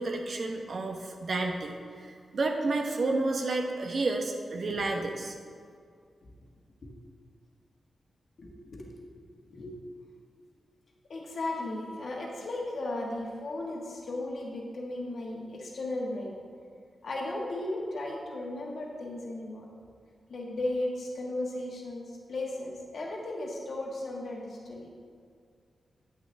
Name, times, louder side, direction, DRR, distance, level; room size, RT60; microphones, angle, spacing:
voice 1, 0.0-1.7 2.0-5.3, right 2 dB, 65° right, 2 dB, 1.1 m, -30 dB
voice 2, 8.4-9.0 9.4-9.7 11.1-16.3 17.0-19.7 20.3-24.9, left 2 dB, 70° left, -2 dB, 1.7 m, -35 dB
9.3 x 7.8 x 3.5 m, 2.2 s
cardioid pair, 60°, 0 cm